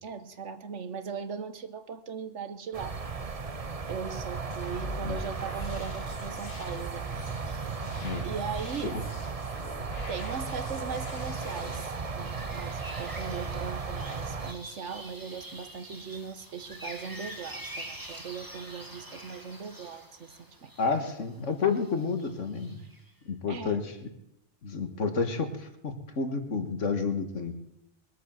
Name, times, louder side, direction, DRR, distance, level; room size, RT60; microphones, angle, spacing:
voice 1, 0.0-3.0 3.9-7.1 7.5-7.8 8.2-9.0 10.1-20.7 23.5-23.8, right 6 dB, 70° right, 10 dB, 1.4 m, -39 dB
sound 1, 2.7-14.5, right 4 dB, 35° right, 0.9 m, -36 dB
sound 2, 4.5-11.9, left 2 dB, 55° left, 1.7 m, -44 dB
voice 2, 8.0-8.3 8.9-9.0 20.8-22.8 23.3-23.9 24.6-27.5, left 4 dB, 75° left, 6 dB, 1.9 m, -30 dB
sound 3, 11.1-23.1, right 1 dB, 15° right, 1.9 m, -46 dB
21.5 x 8.3 x 7.6 m, 0.85 s
omnidirectional pair, 1.3 m